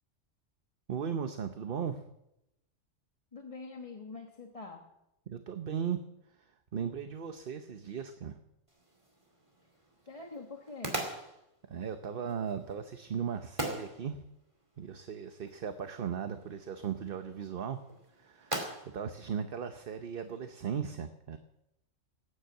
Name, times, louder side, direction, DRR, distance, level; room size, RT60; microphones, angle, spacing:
voice 1, 0.9-2.0 5.3-6.0 6.3-6.5 6.7-8.4 11.7-14.2 14.8-17.8 18.2-21.4, right 7 dB, 50° right, 8 dB, 1.0 m, -37 dB
voice 2, 3.3-4.9 10.1-11.0, left 3 dB, 30° left, 2 dB, 1.3 m, -45 dB
sound 1, 8.7-20.4, right 1 dB, 25° right, 2.7 m, -43 dB
18.0 x 9.8 x 7.7 m, 0.87 s
omnidirectional pair, 1.3 m